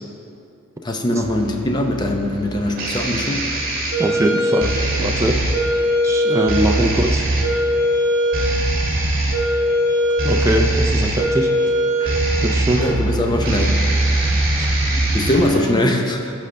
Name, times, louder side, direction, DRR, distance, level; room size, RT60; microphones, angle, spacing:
voice 1, 0.8-3.5 12.0-12.1 12.8-14.1 14.9-16.3, left 1 dB, 20° left, 2 dB, 0.7 m, -22 dB
sound 1, 1.2-15.7, right 1 dB, 45° right, 1.8 m, -20 dB
voice 2, 4.0-5.4 6.0-7.2 10.2-11.5 12.4-12.8 14.6-14.8, right 1 dB, 15° right, 2 dB, 0.4 m, -21 dB
15.0 x 5.3 x 3.4 m, 2.6 s
head